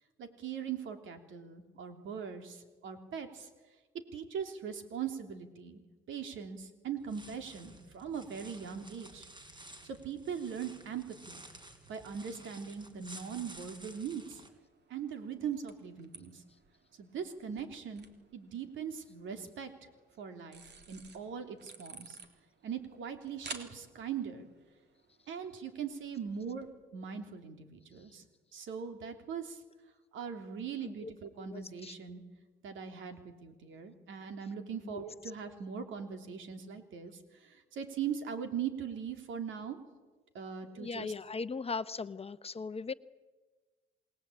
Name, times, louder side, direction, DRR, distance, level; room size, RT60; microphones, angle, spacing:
voice 1, 0.2-3.5 4.1-5.8 6.1-9.3 9.8-11.4 11.9-14.4 14.9-16.4 17.0-18.1 18.3-19.7 20.2-22.2 22.6-24.5 25.3-26.7 26.9-28.2 28.5-29.6 30.1-32.2 32.6-39.8 40.3-41.1, right 7 dB, 75° right, 6 dB, 3.4 m, -40 dB
sound 1, 7.0-14.5, right 1 dB, 25° right, 4.1 m, -53 dB
sound 2, 12.6-26.7, right 5 dB, 60° right, 3.2 m, -54 dB
voice 2, 31.4-31.9 34.8-35.0 40.8-42.9, left 4 dB, 30° left, 13 dB, 0.9 m, -39 dB
28.0 x 20.0 x 8.8 m, 1.3 s
cardioid pair, 90°, 20 cm